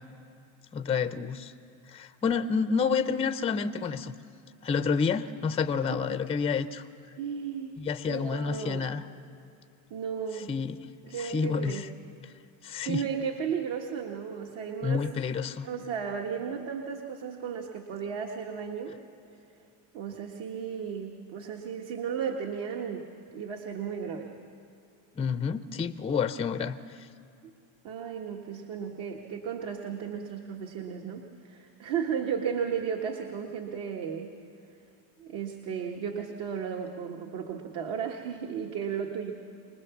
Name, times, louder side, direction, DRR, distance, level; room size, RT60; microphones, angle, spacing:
voice 1, 0.7-1.5 1.9-4.1 4.6-6.8 7.8-9.0 10.5-10.8 11.2-11.9 12.6-13.0 14.8-15.7 25.2-26.8, left 6 dB, 15° left, 11 dB, 0.5 m, -29 dB
voice 2, 7.2-7.7 8.1-8.9 9.9-10.5 11.0-11.9 12.8-15.1 15.6-19.0 19.9-23.1 23.3-24.3 27.4-27.5 27.8-34.3 35.2-39.3, right 7 dB, 60° right, 2 dB, 1.6 m, -34 dB
25.5 x 19.5 x 7.1 m, 2.4 s
cardioid pair, 120°, 48 cm